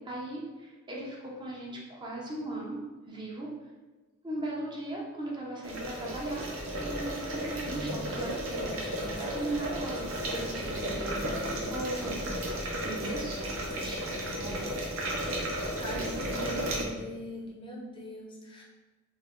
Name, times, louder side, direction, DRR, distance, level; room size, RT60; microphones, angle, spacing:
voice 1, 0.0-3.5 4.2-6.5 6.7-12.2 12.8-14.8, right 1 dB, 20° right, -4 dB, 0.7 m, -38 dB
sound 1, 5.6-16.8, right 1 dB, 75° right, 0.8 m, -34 dB
voice 2, 9.4-9.7 11.2-12.4 15.8-18.6, equal, 25° left, -1 dB, 0.7 m, -42 dB
3.3 x 3.3 x 3.7 m, 1.2 s
head